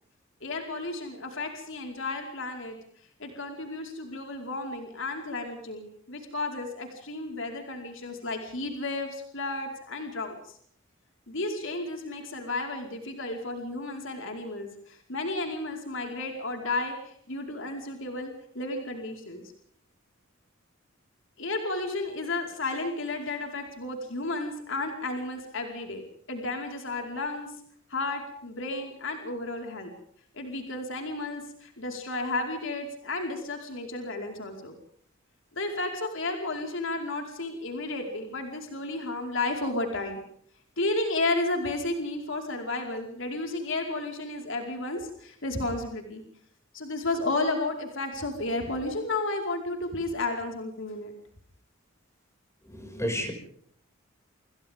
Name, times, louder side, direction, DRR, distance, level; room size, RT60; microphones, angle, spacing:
voice 1, 0.4-2.8 3.2-10.6 11.3-19.4 21.4-27.5 27.9-29.9 30.3-34.7 35.5-40.2 40.8-46.2 46.7-51.1, left 2 dB, 70° left, 3 dB, 4.8 m, -32 dB
voice 2, 52.7-53.3, equal, 15° left, 4 dB, 6.2 m, -31 dB
28.5 x 28.0 x 3.7 m, 0.64 s
head